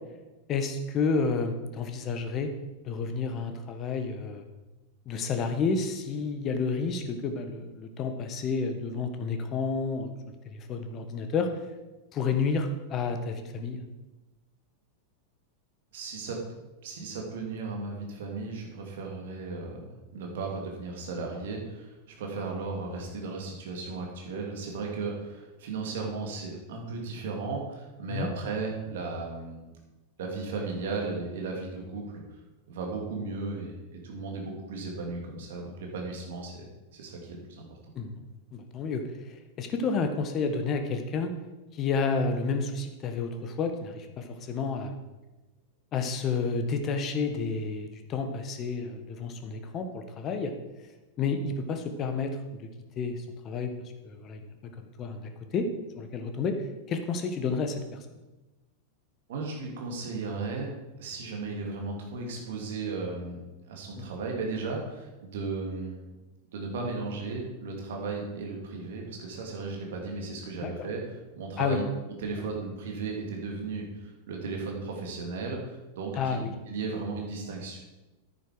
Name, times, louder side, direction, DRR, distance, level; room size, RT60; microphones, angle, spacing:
voice 1, 0.5-2.5 2.8-4.4 5.0-10.1 10.4-11.5 12.1-13.8 28.1-28.3 37.9-38.2 38.5-41.3 41.7-44.9 45.9-50.5 51.2-52.7 52.9-53.7 54.0-54.4 54.8-55.7 56.0-57.8 64.0-64.1 70.6-70.9 71.6-71.8 76.1-76.5, left 4 dB, 30° left, 6 dB, 1.4 m, -30 dB
voice 2, 15.9-16.4 16.8-29.7 30.2-32.2 32.7-36.6 36.9-37.8 59.3-66.0 66.5-71.0 71.4-71.8 72.2-77.8, right 3 dB, 55° right, 0 dB, 2.6 m, -35 dB
10.5 x 9.2 x 5.0 m, 1.1 s
figure-of-eight pair, 90°, 0 cm